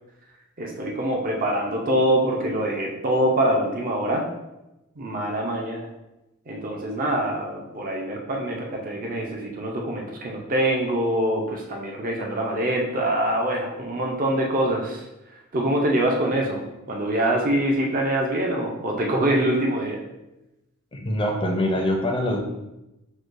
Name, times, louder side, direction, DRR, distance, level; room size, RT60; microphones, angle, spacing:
voice 1, 0.6-4.3 5.0-5.9 6.5-15.1 15.5-20.0, right 1 dB, 40° right, 0 dB, 0.5 m, -24 dB
voice 2, 20.9-22.4, left 1 dB, 25° left, 1 dB, 0.5 m, -24 dB
6.1 x 2.2 x 2.5 m, 0.96 s
head